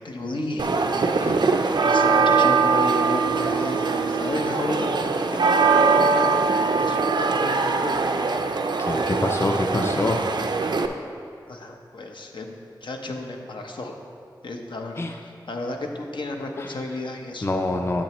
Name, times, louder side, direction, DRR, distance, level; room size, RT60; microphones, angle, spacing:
voice 1, 0.0-8.0 11.5-13.9 14.4-17.5, left 2 dB, 80° left, 2 dB, 0.7 m, -33 dB
sound 1, 0.6-10.9, right 4 dB, 65° right, 0.4 m, -22 dB
voice 2, 8.8-10.2 15.0-15.1 16.6-16.7 17.4-18.0, left 2 dB, 30° left, 3 dB, 0.4 m, -25 dB
10.0 x 6.6 x 3.0 m, 2.4 s
wide cardioid pair, 90°, 8 cm